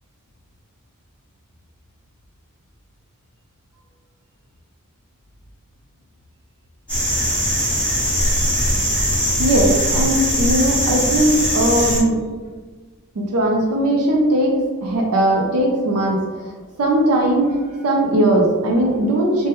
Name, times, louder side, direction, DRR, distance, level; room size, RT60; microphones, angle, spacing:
sound 1, 6.9-12.0, equal, 5° left, 1.1 m, -20 dB
voice 1, 9.4-12.2 13.2-16.3 16.8-19.5, right 1 dB, 75° right, -1 dB, 0.5 m, -18 dB
3.2 x 2.1 x 2.9 m, 1.4 s
head